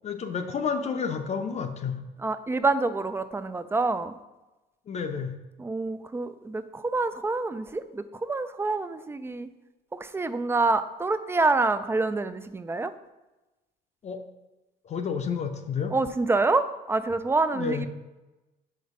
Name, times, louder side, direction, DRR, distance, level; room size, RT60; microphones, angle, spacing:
voice 1, 0.0-2.0 4.9-5.3 14.0-14.2 14.8-16.0 17.5-17.9, left 6 dB, 40° left, 6 dB, 0.6 m, -30 dB
voice 2, 2.2-4.1 5.6-9.5 9.9-12.9 15.9-17.9, right 3 dB, 15° right, 12 dB, 0.3 m, -27 dB
5.1 x 3.9 x 5.4 m, 1.0 s
cardioid pair, 110°, 17 cm